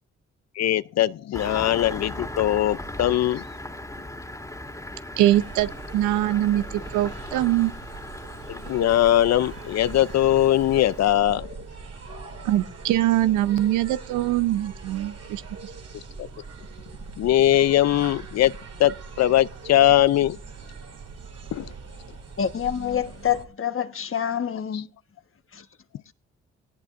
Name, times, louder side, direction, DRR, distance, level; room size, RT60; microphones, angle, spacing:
voice 1, 0.6-3.4 8.5-11.6 12.1-12.4 16.2-16.3 17.2-18.5 18.8-20.4 21.5-21.7 24.4-24.5 24.7-24.8, left 12 dB, 65° left, 0.5 m, -21 dB
Engine starting, 1.3-11.1, left 1 dB, 10° left, 2.3 m, -38 dB
voice 2, 5.2-6.6 6.9-7.7 12.4-15.4, right 14 dB, 90° right, 0.7 m, -22 dB
sound 1, 5.3-23.4, right 4 dB, 55° right, 2.6 m, -41 dB
voice 3, 22.4-24.9 25.5-25.6, left 9 dB, 45° left, 1.3 m, -27 dB
18.0 x 16.0 x 2.5 m
supercardioid pair, 55°, 29 cm